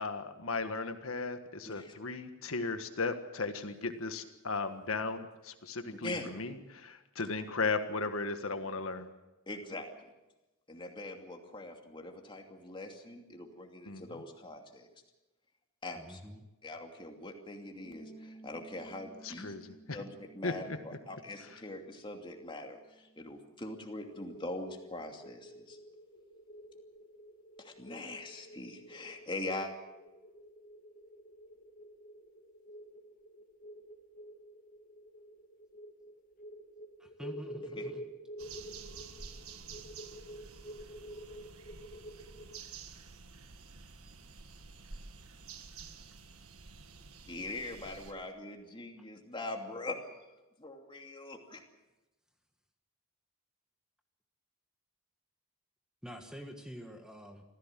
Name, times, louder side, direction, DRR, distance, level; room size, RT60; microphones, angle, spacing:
voice 1, 0.0-9.1 13.9-14.2 19.2-20.0 20.4-20.8 21.4-21.5, left 3 dB, 70° left, 7 dB, 1.5 m, -36 dB
voice 2, 9.5-10.1 10.7-14.9 15.8-16.2 16.6-19.5 19.9-25.8 27.6-29.7 37.7-37.8 47.3-50.0 50.6-51.6, left 2 dB, 25° left, 3 dB, 2.7 m, -42 dB
voice 3, 15.9-16.4 37.0-38.0 49.0-49.1 56.0-57.4, equal, 5° right, 4 dB, 1.6 m, -47 dB
sound 1, 17.8-24.1, right 2 dB, 50° right, 5.0 m, -57 dB
sound 2, 24.0-42.6, equal, 40° left, 2.5 m, -49 dB
sound 3, 38.4-48.1, right 5 dB, 80° right, 1.7 m, -50 dB
25.5 x 16.0 x 7.5 m, 1.0 s
head